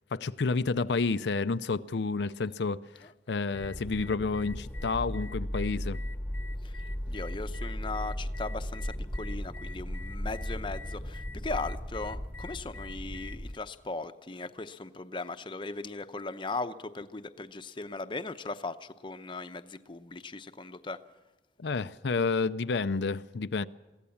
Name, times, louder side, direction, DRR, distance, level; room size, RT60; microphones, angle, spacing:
voice 1, 0.1-6.0 21.6-23.7, left 4 dB, 80° left, 0.6 m, -30 dB
sound 1, 3.5-13.6, equal, 10° left, 1.1 m, -36 dB
voice 2, 7.1-21.0, left 3 dB, 30° left, 0.8 m, -38 dB
22.5 x 16.0 x 7.1 m
head